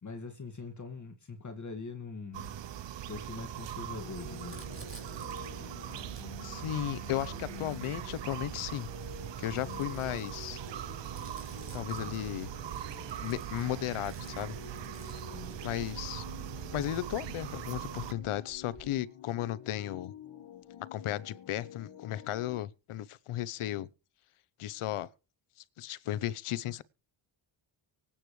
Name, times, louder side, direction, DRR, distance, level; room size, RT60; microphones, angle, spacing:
voice 1, 0.0-2.6 3.1-4.6 9.6-9.9 15.2-15.5, left 4 dB, 35° left, 2.2 m, -43 dB
sound 1, 2.3-18.1, right 11 dB, 60° right, 0.9 m, -41 dB
sound 2, 4.0-22.6, left 10 dB, 65° left, 2.1 m, -50 dB
Crumpling crinkling, 4.4-8.5 9.2-16.3 17.1-17.2 17.4-19.0, right 3 dB, 25° right, 4.5 m, -56 dB
voice 2, 6.4-8.9 9.4-10.6 11.7-12.5 13.2-14.5 15.6-16.2 16.7-20.1 20.9-23.9 24.6-25.1 25.8-26.8, left 13 dB, 85° left, 1.0 m, -35 dB
24.5 x 8.9 x 3.3 m
cardioid pair, 95°, 49 cm